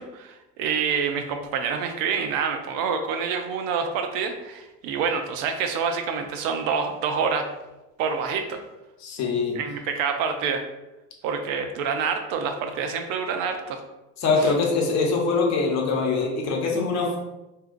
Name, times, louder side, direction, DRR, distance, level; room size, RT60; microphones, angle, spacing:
voice 1, 0.0-7.5 8.0-8.6 9.5-10.7 11.2-13.8 14.3-14.5, right 6 dB, 85° right, 6 dB, 0.5 m, -27 dB
voice 2, 9.0-9.6 14.2-17.2, left 4 dB, 55° left, 0 dB, 0.8 m, -23 dB
3.6 x 2.7 x 2.4 m, 1.0 s
cardioid pair, 145°, 33 cm